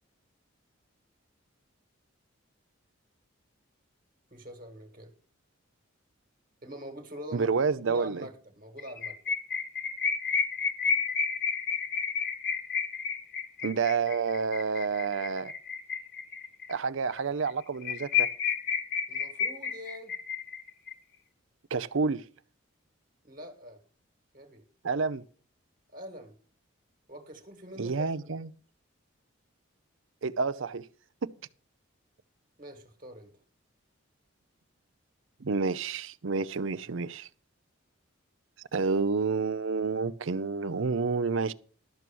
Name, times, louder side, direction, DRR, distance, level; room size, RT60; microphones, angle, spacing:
voice 1, 4.3-5.1 6.6-7.5 7.8-9.2 19.1-20.1 23.2-23.8 24.3-24.7 25.9-26.3 27.1-28.3 32.6-33.3, equal, 40° right, 1.7 m, -44 dB
voice 2, 7.3-8.3 13.6-15.5 16.7-18.3 21.7-22.2 24.8-25.2 27.8-28.5 30.2-30.9 31.2-31.3 35.4-37.3 38.7-41.5, right 4 dB, 70° right, 0.6 m, -29 dB
sound 1, 8.8-16.7 17.1-17.2 17.5-17.6 17.8-20.9, left 6 dB, 50° left, 1.3 m, -31 dB
12.5 x 6.1 x 6.9 m
head